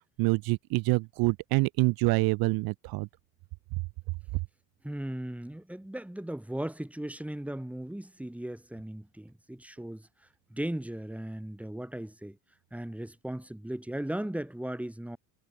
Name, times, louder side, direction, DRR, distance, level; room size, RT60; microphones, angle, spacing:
voice 1, 0.2-3.1, right 25 dB, 70° right, 0.5 m, -26 dB
voice 2, 4.8-12.4 12.7-15.2, right 1 dB, 5° right, 2.9 m, -37 dB
supercardioid pair, 85°, 38 cm